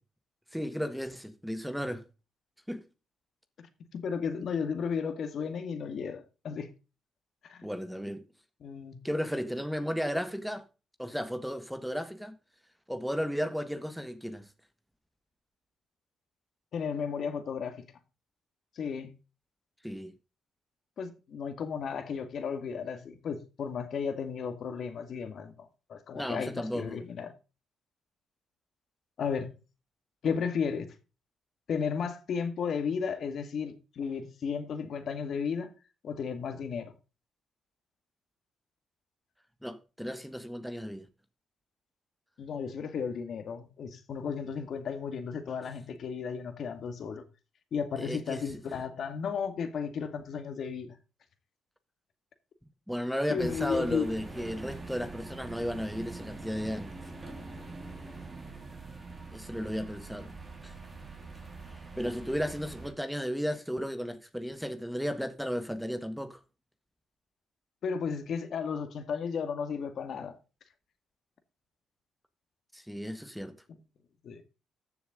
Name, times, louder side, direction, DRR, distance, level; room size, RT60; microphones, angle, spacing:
voice 1, 0.5-2.0 2.7-2.8 7.6-8.2 9.0-10.6 11.0-12.3 12.9-14.5 19.8-20.1 26.1-27.0 39.6-41.1 48.0-48.4 52.9-56.9 59.3-60.3 60.6-60.7 62.0-66.4 72.7-73.5, equal, ahead, 1.4 m, -34 dB
voice 2, 3.9-6.7 7.4-7.7 8.6-9.0 16.7-17.9 18.8-19.1 21.0-27.3 29.2-29.5 30.2-30.9 31.7-35.7 36.0-36.9 42.4-47.2 47.7-51.0 53.3-54.1 58.5-58.6 67.8-70.4 74.2-74.4, left 6 dB, 60° left, 2.0 m, -34 dB
sound 1, 53.4-62.9, right 3 dB, 25° right, 3.7 m, -44 dB
14.0 x 7.1 x 3.8 m
cardioid pair, 90°, 0 cm